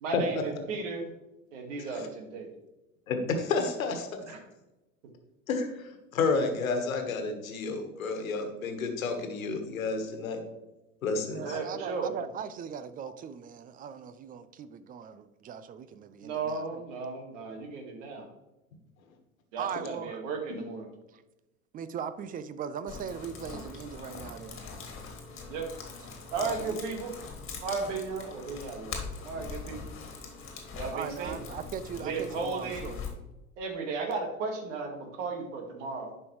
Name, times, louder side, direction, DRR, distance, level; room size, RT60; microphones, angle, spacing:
voice 1, 0.0-1.1 1.5-2.5 4.3-4.4 11.4-12.1 16.2-18.3 19.5-20.9 25.5-25.7 26.3-27.1 27.6-29.0 29.2-29.8 30.7-31.4 32.0-32.8 33.6-36.1, right 4 dB, 60° right, 4 dB, 1.9 m, -35 dB
voice 2, 3.1-4.1 5.5-10.4 11.0-11.6, left 4 dB, 75° left, 5 dB, 1.5 m, -30 dB
voice 3, 11.3-16.8 19.6-20.2 21.1-21.2 21.7-24.6 26.4-26.8 29.4-29.9 30.9-33.0, right 7 dB, 20° right, 13 dB, 0.4 m, -39 dB
sound 1, 22.9-33.1, left 5 dB, 30° left, 2.0 m, -42 dB
10.5 x 5.4 x 3.1 m, 1.0 s
figure-of-eight pair, 75°, 42 cm